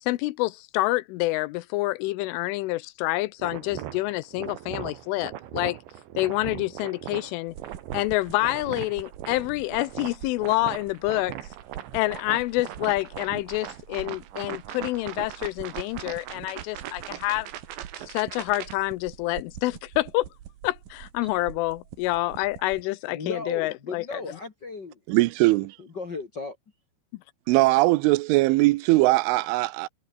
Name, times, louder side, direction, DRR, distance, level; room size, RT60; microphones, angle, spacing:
voice 1, 0.0-5.8 6.2-7.6 7.9-11.3 11.9-17.5 18.0-20.3 20.6-24.2, left 19 dB, 85° left, 3.3 m, -27 dB
sound 1, 3.4-18.7, right 12 dB, 70° right, 3.9 m, -39 dB
sound 2, 7.5-22.8, right 10 dB, 55° right, 3.0 m, -45 dB
voice 2, 23.1-25.0 25.8-26.6, left 3 dB, 60° left, 1.1 m, -35 dB
voice 3, 25.1-25.8 27.5-29.9, right 21 dB, 90° right, 3.2 m, -20 dB
omnidirectional pair, 5.5 m